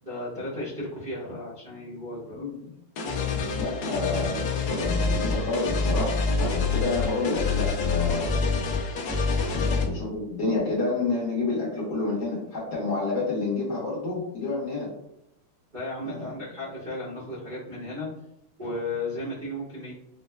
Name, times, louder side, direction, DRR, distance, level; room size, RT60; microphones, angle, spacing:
voice 1, 0.0-2.5 15.7-18.1 18.6-19.9, left 1 dB, 45° right, -10 dB, 0.6 m, -35 dB
voice 2, 2.3-2.7 3.6-8.7 9.5-14.9 16.0-16.4, left 3 dB, 55° left, -6 dB, 1.3 m, -29 dB
sound 1, 3.0-9.8, left 4 dB, 80° left, 0.8 m, -26 dB
5.3 x 2.1 x 2.2 m, 0.78 s
omnidirectional pair, 2.4 m